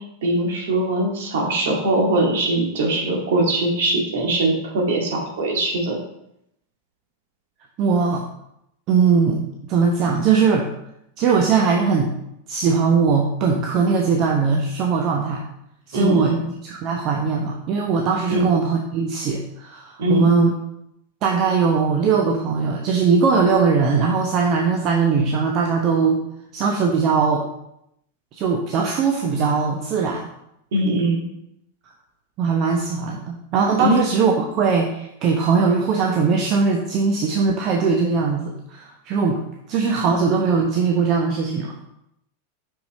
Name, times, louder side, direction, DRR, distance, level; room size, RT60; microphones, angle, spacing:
voice 1, 0.0-6.0 15.9-16.5 18.3-18.5 20.0-20.3 30.7-31.2 33.8-34.0, right 1 dB, 55° right, -1 dB, 2.1 m, -21 dB
voice 2, 7.8-8.2 8.9-10.7 11.2-12.1 12.5-15.4 15.9-16.4 16.6-20.5 21.2-26.2 26.5-27.5 28.4-30.2 32.4-39.4 39.7-41.7, right 5 dB, 35° right, 0 dB, 0.9 m, -20 dB
6.0 x 5.8 x 4.2 m, 0.79 s
figure-of-eight pair, 90°, 0 cm